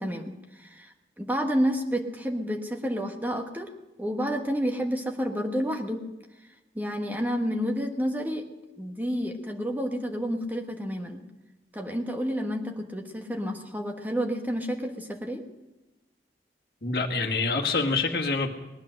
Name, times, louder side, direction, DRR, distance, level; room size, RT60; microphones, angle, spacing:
voice 1, 0.0-3.7 4.0-6.0 6.7-8.4 8.8-11.2 11.7-15.4, equal, 10° right, 2 dB, 1.4 m, -30 dB
voice 2, 16.8-18.5, left 3 dB, 60° left, 2 dB, 1.7 m, -26 dB
19.0 x 10.5 x 6.5 m, 1.0 s
head